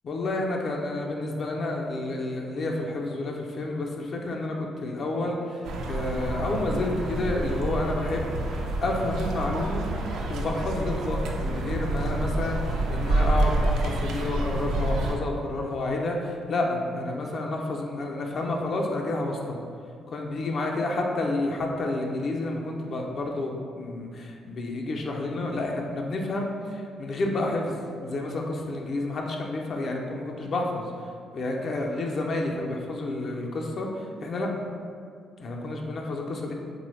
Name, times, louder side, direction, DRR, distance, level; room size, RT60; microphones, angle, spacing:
voice 1, 0.0-8.3 8.8-9.9 10.3-19.6 20.1-34.7 35.4-36.5, left 2 dB, 55° left, 0 dB, 0.4 m, -30 dB
sound 1, 5.6-15.2, right 2 dB, 80° right, 0.3 m, -28 dB
3.3 x 2.0 x 3.1 m, 2.2 s
cardioid pair, 95°, 0 cm